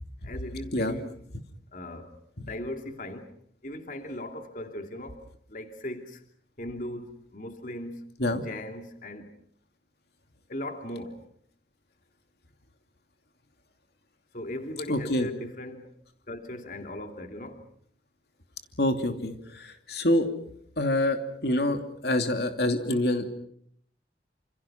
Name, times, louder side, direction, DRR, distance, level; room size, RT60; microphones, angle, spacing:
voice 1, 0.2-1.1 1.7-2.1 2.4-3.2 3.6-5.2 5.5-6.2 6.6-8.0 8.3-9.3 10.5-11.2 14.3-15.9 16.3-17.6, left 1 dB, 50° left, 5 dB, 2.8 m, -38 dB
voice 2, 14.9-15.3 18.8-20.3 20.8-23.3, left 1 dB, 65° left, 6 dB, 2.8 m, -26 dB
28.5 x 28.0 x 5.9 m, 0.65 s
head